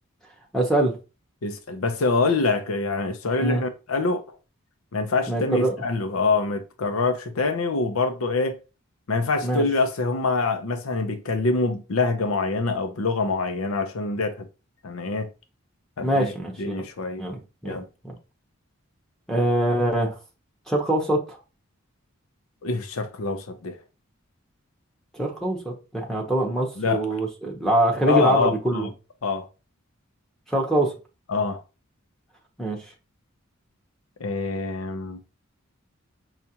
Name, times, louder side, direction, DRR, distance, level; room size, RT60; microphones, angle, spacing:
voice 1, 0.5-1.0 3.4-3.6 5.3-5.8 9.4-9.6 16.0-16.9 17.2-18.2 19.3-20.2 20.7-21.4 25.1-28.9 30.5-30.9 32.6-32.8, right 1 dB, ahead, 0.7 m, -24 dB
voice 2, 1.4-4.2 4.9-8.6 9.1-14.5 14.8-15.3 16.0-16.3 16.6-17.2 17.6-17.9 22.6-23.8 26.8-27.2 28.1-28.9 29.2-29.5 31.3-31.6 34.2-35.2, left 3 dB, 80° left, 0.6 m, -25 dB
5.6 x 2.4 x 2.8 m
head